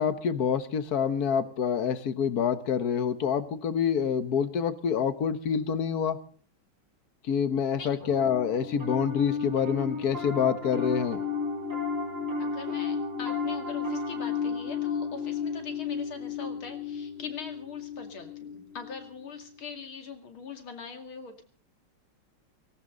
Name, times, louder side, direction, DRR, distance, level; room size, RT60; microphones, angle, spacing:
voice 1, 0.0-6.2 7.3-11.2, left 7 dB, 55° left, 12 dB, 1.5 m, -27 dB
Piano, 8.0-19.5, left 5 dB, 35° right, 5.3 m, -33 dB
voice 2, 12.4-21.4, left 5 dB, 90° left, 6 dB, 3.2 m, -42 dB
18.0 x 18.0 x 3.9 m, 0.44 s
omnidirectional pair, 2.2 m